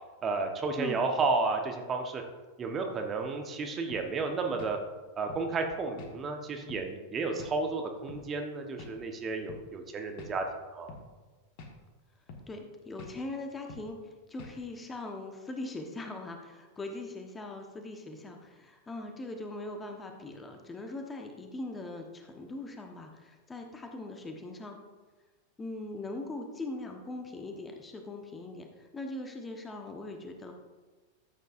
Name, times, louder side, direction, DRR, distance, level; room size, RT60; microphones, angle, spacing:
voice 1, 0.2-2.2 2.6-4.8 5.2-10.4 10.7-10.9, right 3 dB, 25° right, 3 dB, 1.1 m, -32 dB
sound 1, 3.9-4.1 4.6-4.8 5.3-5.5 6.0-6.2 6.7-6.9 7.4-7.6 8.1-8.3 8.8-9.0 9.5-9.7 10.2-10.4 10.9-11.1 11.6-11.8 12.3-12.5 13.0-13.2 13.7-13.9 14.4-14.6, left 3 dB, 45° left, 1.5 m, -46 dB
voice 2, 12.5-14.0 14.3-24.8 25.6-30.5, left 2 dB, 15° left, 3 dB, 1.1 m, -41 dB
13.5 x 8.0 x 2.6 m, 1.3 s
figure-of-eight pair, 90°, 0 cm